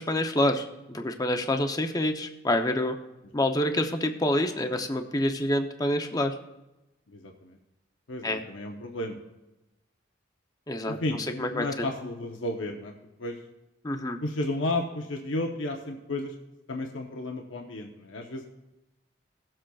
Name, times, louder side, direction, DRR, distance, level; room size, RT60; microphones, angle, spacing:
voice 1, 0.0-3.0 3.3-6.3 8.2-8.4 10.7-11.0 11.4-11.9 13.8-14.2, left 1 dB, 20° left, 5 dB, 0.6 m, -27 dB
voice 2, 7.1-7.6 8.1-9.2 10.9-12.9 13.2-13.4 14.2-16.3 16.7-18.5, left 2 dB, 85° left, 2 dB, 0.9 m, -33 dB
18.0 x 7.5 x 2.3 m, 0.97 s
head